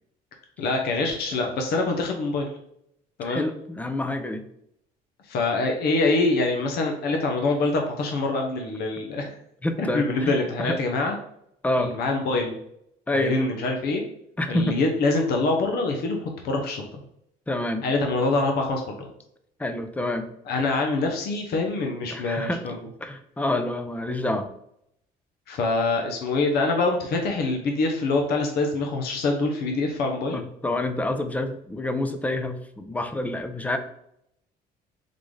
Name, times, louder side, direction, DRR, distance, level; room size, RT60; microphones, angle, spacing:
voice 1, 0.6-2.5 3.2-3.4 5.2-9.3 9.8-11.2 11.8-12.5 13.1-14.0 14.5-17.0 17.8-19.1 20.5-22.8 25.5-30.4, left 3 dB, 70° left, 2 dB, 0.8 m, -25 dB
voice 2, 3.2-4.4 9.6-10.3 10.6-10.8 11.6-12.0 13.1-13.4 14.4-14.8 17.5-17.8 19.6-20.3 22.1-24.5 30.3-33.8, left 1 dB, 10° left, 8 dB, 0.5 m, -27 dB
3.8 x 3.6 x 3.2 m, 0.74 s
cardioid pair, 110°, 17 cm